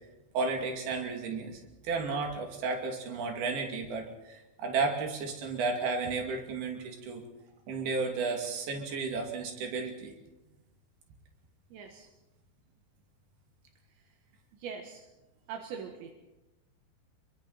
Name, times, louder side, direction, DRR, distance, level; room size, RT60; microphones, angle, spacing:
voice 1, 0.3-7.2 7.7-10.1, right 4 dB, 60° right, 3 dB, 4.4 m, -33 dB
voice 2, 11.7-12.1 14.6-15.0 15.5-16.1, right 6 dB, 80° right, 3 dB, 3.8 m, -41 dB
29.5 x 23.0 x 4.3 m, 1.0 s
omnidirectional pair, 5.1 m